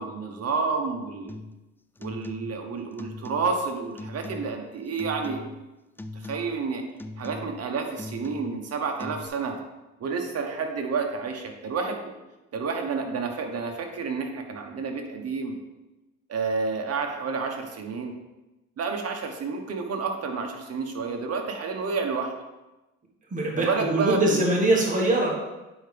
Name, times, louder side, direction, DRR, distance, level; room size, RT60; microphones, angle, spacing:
voice 1, 0.0-1.4 2.0-5.5 6.2-6.8 7.2-9.5 10.0-12.1 12.5-15.6 16.3-18.1 18.8-22.3 23.6-24.4, right 4 dB, 55° right, 3 dB, 1.2 m, -30 dB
sound 1, 1.3-1.6 2.0-2.7 3.0-3.7 4.0-4.6 5.0-5.7 6.0-6.6 7.0-7.7 8.0-8.7 9.0-9.3, left 2 dB, 5° left, 0.3 m, -40 dB
voice 2, 23.3-25.4, right 1 dB, 25° right, -3 dB, 1.6 m, -23 dB
8.7 x 4.8 x 3.4 m, 1.1 s
cardioid pair, 90°, 30 cm